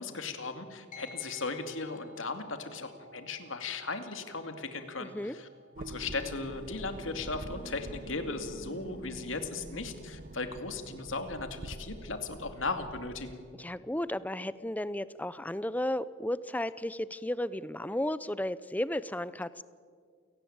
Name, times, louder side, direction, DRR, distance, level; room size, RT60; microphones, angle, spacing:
voice 1, 0.0-5.5 5.8-13.4, left 3 dB, 75° left, 7 dB, 2.5 m, -37 dB
sound 1, 0.9-10.6, left 1 dB, 40° left, 5.3 m, -57 dB
voice 2, 5.0-5.4 13.6-19.6, left 1 dB, 10° left, 17 dB, 0.6 m, -34 dB
sound 2, 5.8-13.4, right 1 dB, 45° right, 0.8 m, -45 dB
29.0 x 18.0 x 8.8 m, 2.1 s
head